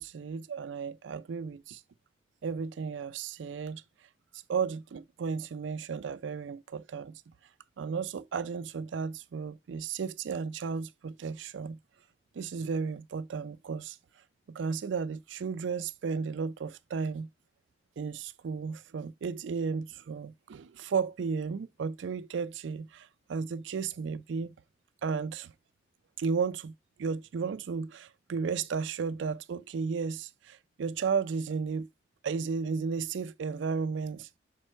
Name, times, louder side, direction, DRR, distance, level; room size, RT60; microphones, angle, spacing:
voice 1, 0.0-1.8 2.4-3.8 4.3-7.2 7.8-11.8 12.3-14.0 14.5-17.3 18.0-24.5 25.0-25.5 26.2-26.7 27.0-31.9 32.2-34.4, right 5 dB, 80° right, 0.4 m, -34 dB
5.1 x 4.4 x 4.4 m
head